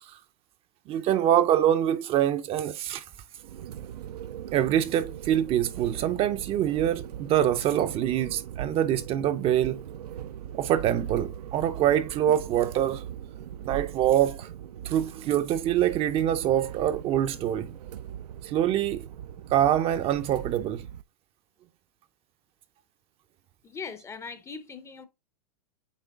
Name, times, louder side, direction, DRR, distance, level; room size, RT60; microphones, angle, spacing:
voice 1, 0.9-3.0 4.5-9.9 10.5-13.0 13.6-14.5 14.8-17.7 18.4-19.1 19.5-20.9, right 11 dB, 30° right, 0.5 m, -25 dB
sound 1, 3.4-21.0, right 10 dB, 80° right, 0.5 m, -40 dB
voice 2, 23.6-25.1, left 5 dB, 15° left, 0.6 m, -40 dB
8.4 x 3.2 x 3.6 m
hypercardioid pair, 125°, 20 cm